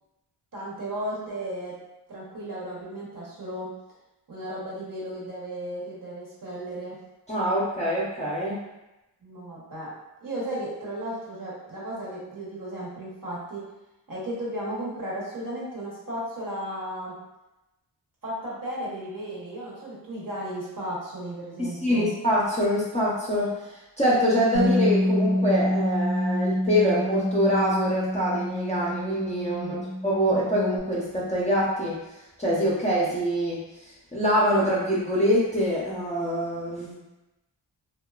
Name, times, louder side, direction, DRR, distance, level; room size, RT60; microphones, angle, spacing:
voice 1, 0.5-1.8 2.1-3.7 4.3-7.0 9.2-13.7 14.1-17.2 18.2-22.1 29.6-29.8, right 1 dB, 45° right, -6 dB, 1.0 m, -35 dB
voice 2, 7.3-8.6 21.6-32.0 32.4-33.6 34.1-37.0, equal, 15° left, -7 dB, 0.5 m, -25 dB
Bass guitar, 24.5-30.8, left 1 dB, 75° right, 0.8 m, -27 dB
2.8 x 2.2 x 2.3 m, 0.98 s
wide cardioid pair, 90°, 45 cm